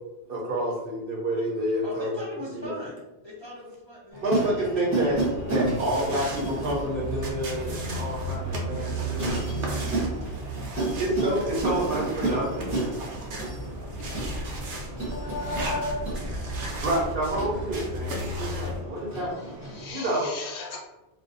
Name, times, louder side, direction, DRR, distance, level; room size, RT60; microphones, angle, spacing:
voice 1, 0.3-2.2 2.5-2.6 4.2-5.2 5.5-9.8 11.0-12.7 16.8-19.3 19.9-20.3, right 1 dB, 60° right, -3 dB, 0.7 m, -28 dB
voice 2, 1.8-5.0 5.6-6.6 19.6-20.3, left 1 dB, 40° left, -8 dB, 0.4 m, -41 dB
sound 1, 4.1-19.9, right 2 dB, 20° right, 0.7 m, -33 dB
sound 2, 5.1-18.8, right 1 dB, 85° right, 0.9 m, -34 dB
voice 3, 15.1-16.1 19.6-20.8, left 3 dB, 75° left, -1 dB, 0.9 m, -34 dB
2.4 x 2.0 x 2.5 m, 1.0 s
omnidirectional pair, 1.2 m